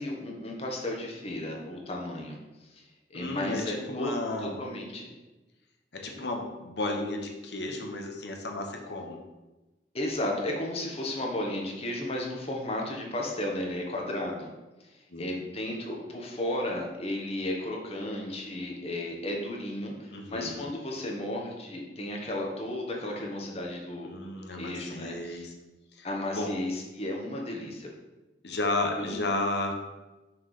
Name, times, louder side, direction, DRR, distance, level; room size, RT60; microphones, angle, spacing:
voice 1, 0.0-2.4 2.7-2.8 3.1-4.1 4.4-5.2 6.1-6.3 9.9-14.5 15.2-24.3 24.6-25.5 26.0-27.9 29.0-29.2, left 1 dB, 35° left, 0 dB, 1.1 m, -34 dB
voice 2, 3.1-4.7 5.9-9.2 15.1-15.2 20.1-20.7 24.0-25.5 26.0-26.6 28.4-29.8, left 2 dB, 70° left, 2 dB, 1.0 m, -33 dB
5.9 x 3.3 x 5.8 m, 1.1 s
head